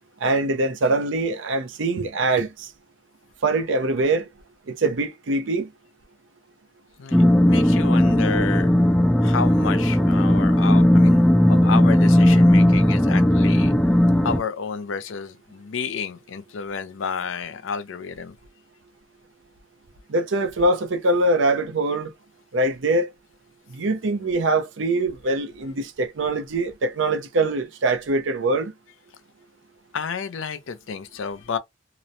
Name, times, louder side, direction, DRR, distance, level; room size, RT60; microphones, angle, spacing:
voice 1, 0.2-2.7 3.4-4.3 4.7-5.7 7.2-7.3 20.1-22.1 22.5-23.1 23.7-28.7, right 2 dB, 75° right, 0.6 m, -23 dB
voice 2, 7.0-8.7 9.2-13.9 14.2-18.4 29.9-31.6, left 6 dB, 80° left, 0.5 m, -31 dB
sound 1, 7.1-14.4, left 1 dB, 5° left, 0.3 m, -17 dB
2.9 x 2.0 x 2.5 m
head